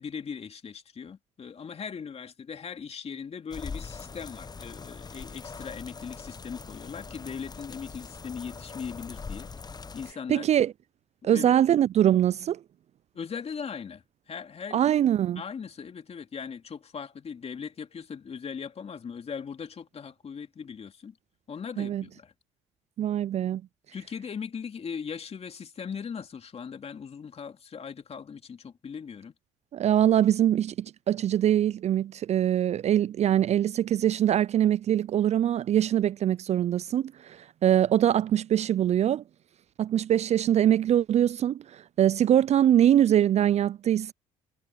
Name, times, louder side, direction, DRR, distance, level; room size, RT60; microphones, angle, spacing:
voice 1, 0.0-9.5 9.9-10.5 11.2-11.5 13.1-21.2 21.5-22.3 23.9-29.3, left 6 dB, 40° left, 2.8 m, -39 dB
sound 1, 3.5-10.1, left 4 dB, 25° left, 0.9 m, -42 dB
voice 2, 10.3-10.7 11.2-12.6 14.7-15.4 21.8-22.0 23.0-23.6 29.7-39.2 39.8-44.1, right 11 dB, 45° right, 0.4 m, -23 dB
hypercardioid pair, 60°, 16 cm